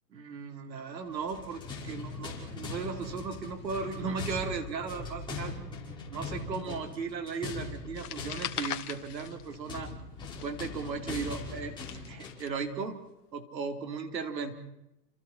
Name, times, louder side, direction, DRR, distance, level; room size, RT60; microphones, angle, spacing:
voice 1, 0.1-5.5 6.1-9.9 10.4-11.7 12.1-13.0 13.3-14.5, right 5 dB, 85° right, 6 dB, 4.0 m, -36 dB
sound 1, 1.1-12.6, left 3 dB, 10° left, 5.1 m, -41 dB
sound 2, 8.0-10.0 10.3-12.5, left 10 dB, 65° left, 2.3 m, -40 dB
29.5 x 27.5 x 4.5 m, 0.88 s
hypercardioid pair, 155°, 49 cm